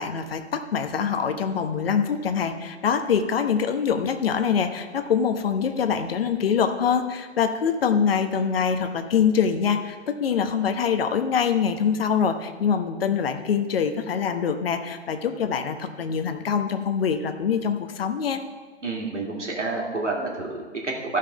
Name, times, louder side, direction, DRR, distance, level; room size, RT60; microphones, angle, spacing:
voice 1, 0.0-18.4, left 7 dB, 55° left, 8 dB, 1.0 m, -24 dB
voice 2, 18.8-21.2, right 3 dB, 85° right, -2 dB, 2.7 m, -29 dB
14.0 x 5.7 x 5.1 m, 1.5 s
figure-of-eight pair, 120°, 35 cm